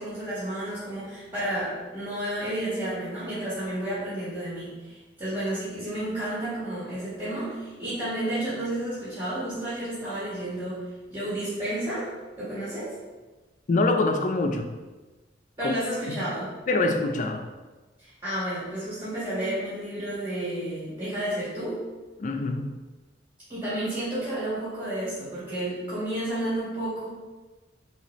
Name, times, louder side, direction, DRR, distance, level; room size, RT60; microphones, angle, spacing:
voice 1, 0.0-12.1 12.4-12.9 15.6-16.6 18.0-21.8 23.5-27.1, right 1 dB, 25° right, -11 dB, 1.5 m, -31 dB
voice 2, 13.7-14.7 15.6-15.8 16.2-16.3 16.7-17.5 22.2-22.7, left 2 dB, 40° left, 5 dB, 0.4 m, -25 dB
4.1 x 3.7 x 3.1 m, 1.2 s
head